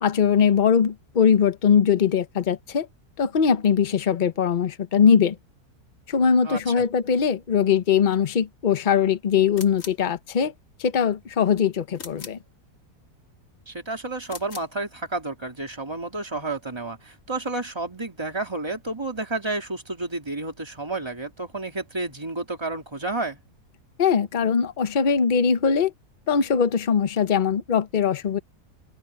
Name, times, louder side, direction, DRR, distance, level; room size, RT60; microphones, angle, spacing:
voice 1, 0.0-2.9 3.2-5.4 6.1-10.5 10.8-12.4 24.0-25.9 26.3-28.4, left 7 dB, 35° left, 0.9 m, -21 dB
voice 2, 6.4-6.8 13.7-23.4, right 2 dB, 15° right, 3.1 m, -31 dB
sound 1, 9.5-10.1 12.0-12.5 14.2-14.8, left 5 dB, 55° left, 2.1 m, -41 dB
omnidirectional pair, 1.7 m